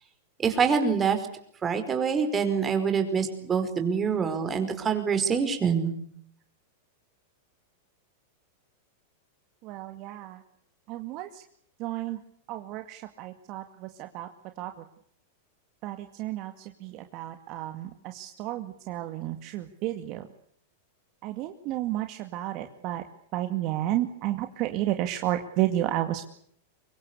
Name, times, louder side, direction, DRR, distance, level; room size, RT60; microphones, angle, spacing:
voice 1, 0.4-1.2 1.6-5.9, right 6 dB, 20° right, 7 dB, 5.0 m, -25 dB
voice 2, 9.6-10.4 10.9-11.3 11.8-12.2 12.5-14.3 14.6-14.7 15.8-16.5 16.8-20.2 21.2-23.0 23.3-26.3, right 14 dB, 45° right, 6 dB, 2.1 m, -31 dB
25.0 x 22.0 x 8.4 m, 0.66 s
supercardioid pair, 135°, 0 cm